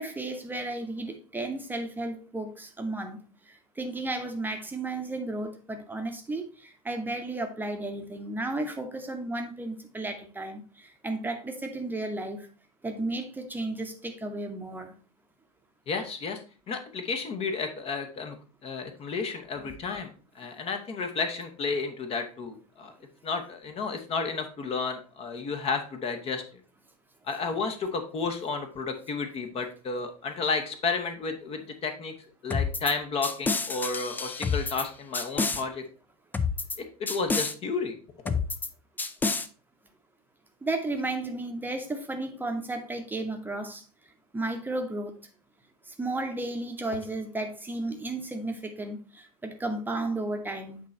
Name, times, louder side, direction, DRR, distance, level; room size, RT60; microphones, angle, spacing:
voice 1, 0.0-3.2 3.4-12.5 12.8-14.9 40.6-43.8 44.3-45.3 45.9-50.8, right 2 dB, 10° right, 4 dB, 0.8 m, -33 dB
voice 2, 15.9-16.4 16.7-18.4 18.6-20.1 20.3-22.9 23.2-26.4 27.3-32.1 32.4-35.8 36.8-38.0 38.2-38.4, left 4 dB, 30° left, 7 dB, 0.8 m, -32 dB
sound 1, 32.5-32.9 33.2-34.9 35.1-35.6 36.3-36.8 37.1-37.5 38.3-38.7 39.0-39.5, left 4 dB, 10° left, 0.4 m, -28 dB
8.3 x 3.1 x 4.2 m, 0.38 s
figure-of-eight pair, 80°, 20 cm